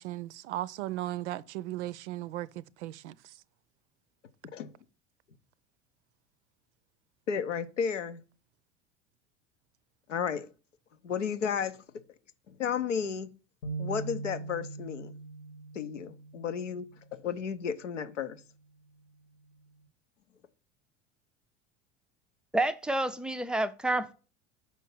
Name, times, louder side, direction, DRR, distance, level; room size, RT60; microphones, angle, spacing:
voice 1, 0.0-3.1, right 15 dB, 70° right, 0.5 m, -36 dB
voice 2, 7.3-8.2 10.1-10.5 11.0-11.8 12.5-13.3 13.8-15.1 15.7-16.9 17.1-18.4, left 7 dB, 85° left, 0.7 m, -33 dB
sound 1, 13.6-17.1, right 4 dB, 65° left, 1.0 m, -41 dB
voice 3, 22.5-24.1, right 2 dB, 5° right, 0.3 m, -29 dB
5.7 x 4.5 x 6.0 m
figure-of-eight pair, 75°, 36 cm